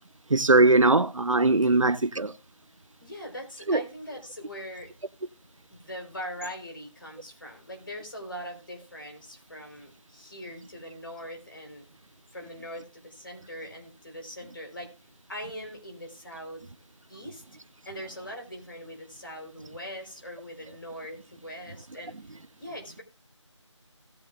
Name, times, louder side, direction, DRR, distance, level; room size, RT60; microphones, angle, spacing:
voice 1, 0.3-2.3 3.7-3.8, right 2 dB, 90° right, 0.9 m, -20 dB
voice 2, 3.0-4.9 5.7-11.9 12.3-14.9 15.3-16.6 17.1-17.4 17.8-22.2 22.6-23.0, equal, 45° left, 3.9 m, -41 dB
18.0 x 7.8 x 2.4 m
figure-of-eight pair, 180°, 16 cm